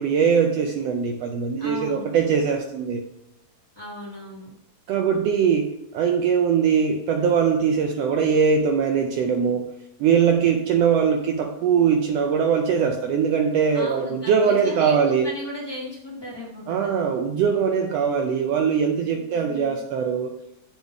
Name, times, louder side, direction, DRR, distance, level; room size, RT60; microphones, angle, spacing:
voice 1, 0.0-3.0 4.9-5.7 5.9-9.7 10.0-15.3 16.7-20.3, right 6 dB, 80° right, 3 dB, 1.5 m, -21 dB
voice 2, 1.6-2.1 3.7-4.5 13.7-17.0 19.2-19.8, left 1 dB, 35° left, -7 dB, 0.3 m, -36 dB
8.1 x 3.5 x 4.6 m, 0.84 s
omnidirectional pair, 3.3 m